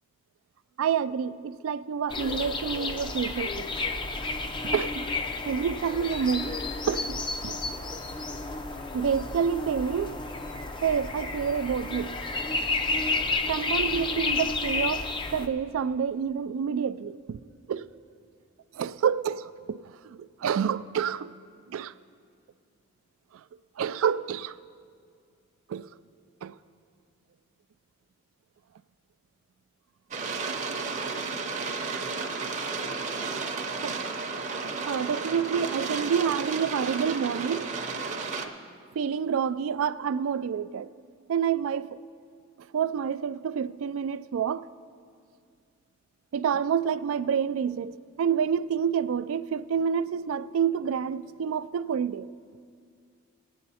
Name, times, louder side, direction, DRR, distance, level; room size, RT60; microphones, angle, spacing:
voice 1, 0.8-3.7 4.7-5.0 5.4-6.6 6.9-7.6 8.9-10.1 10.8-12.1 13.5-15.1 15.3-17.4 17.7-17.9 18.7-19.5 20.0-21.3 21.7-21.9 23.8-24.6 25.7-25.9 26.4-26.6 33.8-34.0 34.8-37.7 39.0-40.9 41.3-42.0 42.7-44.7 46.3-52.3, right 7 dB, 75° right, 0.3 m, -28 dB
sound 1, 2.1-15.5, left 3 dB, 25° left, 0.4 m, -31 dB
sound 2, 30.1-38.5, right 4 dB, 35° right, 0.7 m, -33 dB
18.5 x 8.7 x 4.1 m
head